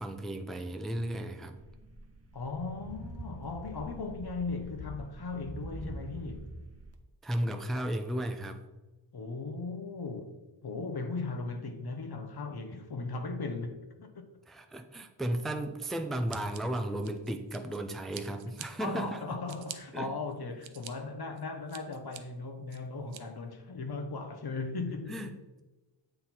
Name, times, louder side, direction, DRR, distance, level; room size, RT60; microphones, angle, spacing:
voice 1, 0.0-1.6 7.2-8.6 14.5-19.4 19.9-20.1 25.1-25.6, right 1 dB, ahead, 0.5 m, -34 dB
sound 1, 1.6-6.9, right 1 dB, 30° right, 0.9 m, -44 dB
voice 2, 2.3-6.5 9.1-10.3 10.6-14.3 18.8-25.3, left 3 dB, 55° left, 1.0 m, -37 dB
Scissors, 16.3-17.8 18.1-18.7 19.2-19.8 20.3-20.9 21.4-22.2 22.7-23.2, right 10 dB, 75° right, 0.6 m, -46 dB
7.9 x 3.7 x 4.4 m
cardioid pair, 70°, 47 cm